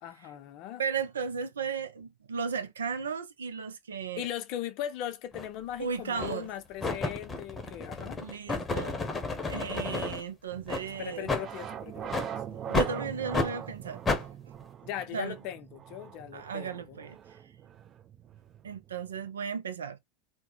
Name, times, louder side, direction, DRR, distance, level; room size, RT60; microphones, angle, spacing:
voice 1, 0.0-0.8 4.2-8.2 10.7-13.0 14.8-17.0, left 11 dB, 50° left, 0.6 m, -39 dB
voice 2, 0.8-4.3 5.8-6.5 8.2-9.1 9.4-11.3 12.7-14.3 15.1-15.4 16.3-17.4 18.6-20.0, right 6 dB, 80° right, 0.4 m, -35 dB
sound 1, 5.3-5.5 6.2-6.5 6.8-10.2 10.7-10.8 11.3-11.4 12.1-12.3 12.7-12.9 13.3-13.5 14.1-14.2, left 3 dB, 20° left, 0.8 m, -31 dB
sound 2, 10.5-19.3, right 9 dB, 40° right, 0.7 m, -43 dB
2.8 x 2.1 x 3.8 m
figure-of-eight pair, 80°, 0 cm